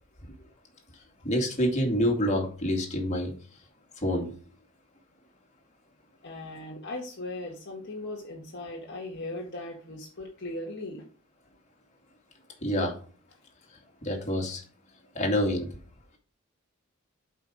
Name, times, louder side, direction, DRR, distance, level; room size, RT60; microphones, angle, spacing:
voice 1, 1.2-3.3 4.0-4.3 12.6-12.9 14.0-14.6 15.1-15.7, equal, 35° left, 0 dB, 2.4 m, -27 dB
voice 2, 6.2-11.1, left 2 dB, 55° left, -2 dB, 1.6 m, -38 dB
8.1 x 5.6 x 5.0 m, 0.41 s
head